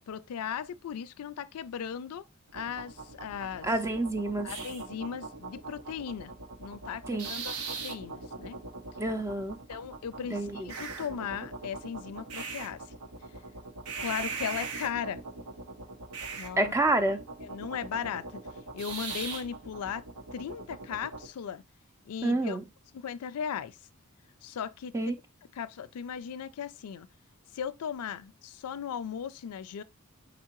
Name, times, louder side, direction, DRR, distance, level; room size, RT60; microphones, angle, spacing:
voice 1, 0.1-2.2 2.5-3.7 4.4-6.3 6.6-8.6 9.7-12.8 14.0-15.2 16.4-16.7 17.4-18.3 18.7-20.0 20.3-21.6 22.1-22.6 22.9-23.8 24.4-24.9 25.5-27.1 27.5-29.8, left 7 dB, 85° left, 0.4 m, -37 dB
sound 1, 2.5-21.3, right 4 dB, 70° right, 0.8 m, -40 dB
voice 2, 3.6-4.5 7.1-7.3 9.0-9.6 10.3-10.7 16.6-17.2 22.2-22.6 24.9-25.1, right 2 dB, 15° right, 0.4 m, -28 dB
5.0 x 3.7 x 2.9 m
head